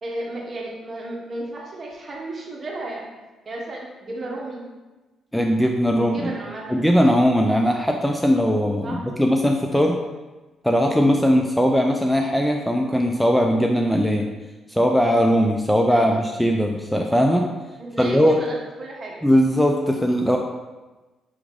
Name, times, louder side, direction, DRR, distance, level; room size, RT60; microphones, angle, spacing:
voice 1, 0.0-3.1 3.4-4.6 6.0-6.8 8.8-9.0 15.9-16.2 17.8-19.2, right 1 dB, 40° right, -2 dB, 1.1 m, -34 dB
voice 2, 5.3-6.3 6.7-10.0 10.6-14.3 14.7-17.4 18.0-18.4 19.2-20.4, equal, 5° left, 2 dB, 0.3 m, -19 dB
4.9 x 3.0 x 3.5 m, 1.2 s
cardioid pair, 90°, 0 cm